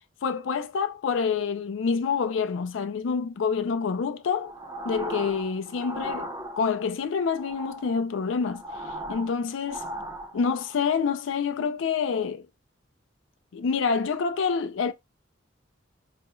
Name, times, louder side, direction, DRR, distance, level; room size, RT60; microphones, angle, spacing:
voice 1, 0.2-4.5 4.8-6.3 6.6-9.9 10.3-12.4 13.5-14.9, left 5 dB, 75° left, 0.4 m, -27 dB
sound 1, 4.3-6.9 7.3-10.8, right 1 dB, 20° right, 0.6 m, -38 dB
4.2 x 2.3 x 3.0 m
head